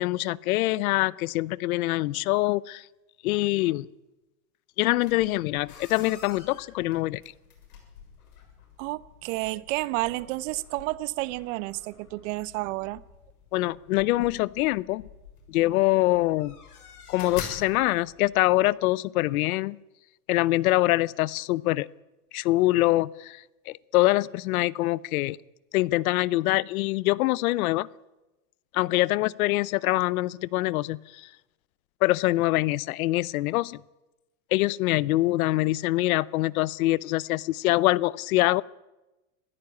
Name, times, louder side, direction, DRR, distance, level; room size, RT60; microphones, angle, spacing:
voice 1, 0.0-2.8 3.2-3.9 4.8-7.2 13.5-15.1 15.5-16.6 17.1-19.8 20.3-21.9 22.3-25.4 25.7-27.9 28.7-31.3 32.0-33.8 34.5-38.6, left 18 dB, 65° left, 0.7 m, -24 dB
sound 1, 4.9-18.5, left 6 dB, 85° left, 6.9 m, -47 dB
voice 2, 8.8-13.0, right 20 dB, 55° right, 1.0 m, -31 dB
25.5 x 15.5 x 8.6 m
supercardioid pair, 130°, 45 cm